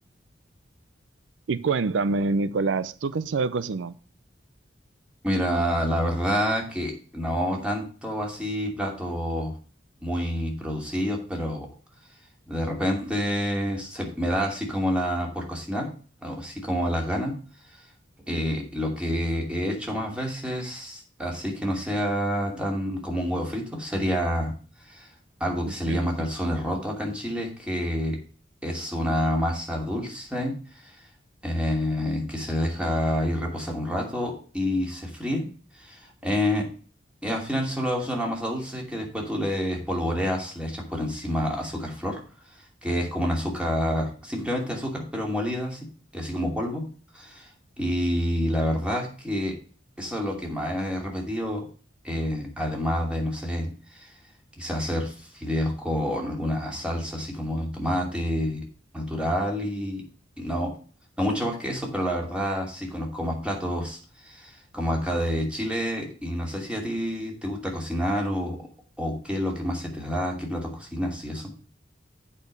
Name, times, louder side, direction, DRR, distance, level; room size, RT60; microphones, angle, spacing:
voice 1, 1.5-3.9 25.7-26.0, right 4 dB, 85° right, 0.4 m, -26 dB
voice 2, 5.2-9.5 10.0-11.7 12.5-15.9 16.2-17.3 18.3-24.5 24.9-25.1 25.4-28.2 28.6-31.0 31.4-35.5 35.8-36.7 37.2-42.2 42.8-45.9 46.1-46.8 47.1-47.5 47.8-49.6 50.0-51.7 52.0-54.1 54.6-58.6 58.9-60.1 60.4-60.7 61.2-68.7 69.0-71.5, equal, 5° right, 2.6 m, -28 dB
8.5 x 5.1 x 6.5 m
head